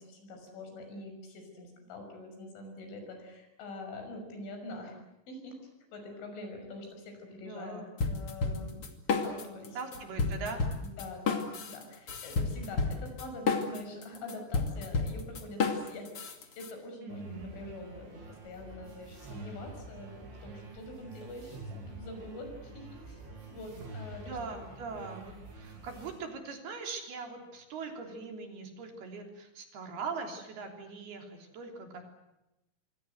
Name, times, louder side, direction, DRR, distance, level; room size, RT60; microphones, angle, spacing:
voice 1, 0.0-5.0 5.3-5.6 5.9-9.8 10.3-10.5 10.8-23.2 23.5-24.6, left 2 dB, 80° left, 5 dB, 8.6 m, -45 dB
voice 2, 7.4-7.9 9.7-10.6 17.0-17.5 24.2-32.1, right 4 dB, 55° right, 4 dB, 5.1 m, -41 dB
sound 1, 8.0-9.7 9.9-16.7, left 4 dB, 35° left, 2.6 m, -31 dB
sound 2, 17.1-26.1, right 2 dB, 75° right, 8.8 m, -47 dB
27.0 x 24.0 x 8.0 m, 0.93 s
omnidirectional pair, 5.4 m